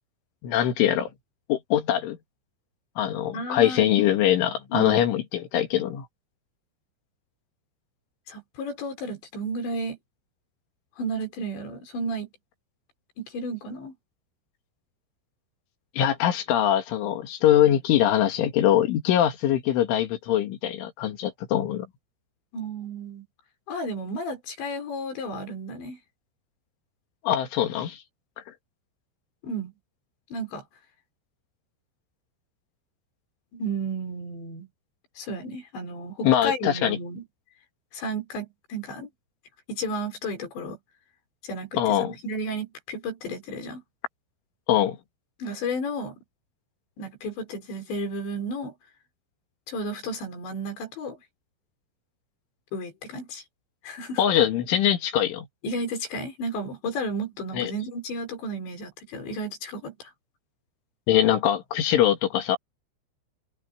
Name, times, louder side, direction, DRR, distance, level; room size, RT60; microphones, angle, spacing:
voice 1, 0.4-1.1 1.5-2.2 3.0-6.1 16.0-21.9 27.2-28.0 36.2-37.0 41.8-42.1 44.7-45.0 54.2-55.5 57.5-57.7 61.1-62.6, left 11 dB, 85° left, 4.8 m, -22 dB
voice 2, 3.3-3.9 4.7-5.0 8.3-10.0 11.0-12.3 13.2-13.9 22.5-23.2 23.7-26.0 29.4-29.7 30.3-30.6 33.5-34.7 35.2-37.2 37.9-39.1 39.7-40.8 41.4-43.8 45.4-46.2 47.0-48.7 49.7-51.2 52.7-53.4 53.8-54.2 55.6-60.1, right 1 dB, 70° left, 7.5 m, -33 dB
omnidirectional pair, 5.4 m